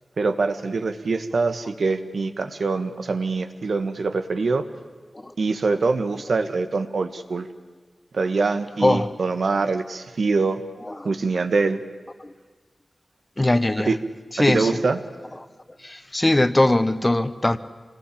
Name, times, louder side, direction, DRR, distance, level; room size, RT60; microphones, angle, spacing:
voice 1, 0.2-4.6 5.4-7.5 8.1-10.6 11.0-11.8 13.9-14.0 14.5-15.0, right 4 dB, 85° right, 8 dB, 1.7 m, -24 dB
voice 2, 13.4-13.9 14.4-14.8 15.8-17.6, left 1 dB, 20° left, 12 dB, 1.1 m, -20 dB
26.5 x 20.0 x 8.7 m, 1.5 s
wide cardioid pair, 90°, 0 cm